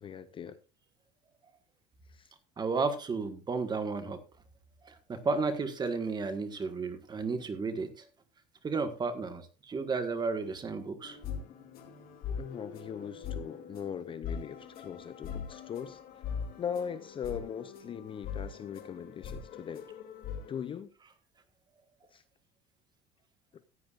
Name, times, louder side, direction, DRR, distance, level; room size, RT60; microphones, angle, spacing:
voice 1, 0.0-0.6 2.1-2.3 12.4-16.3 16.6-19.8 20.5-20.9 22.1-22.2, left 7 dB, 25° left, 13 dB, 0.6 m, -40 dB
voice 2, 2.6-4.2 4.8-8.1 8.6-11.2, right 4 dB, 20° right, 8 dB, 1.6 m, -33 dB
sound 1, 11.0-20.7, left 7 dB, 50° left, 2.5 m, -42 dB
16.0 x 9.3 x 2.5 m, 0.32 s
cardioid pair, 140°, 19 cm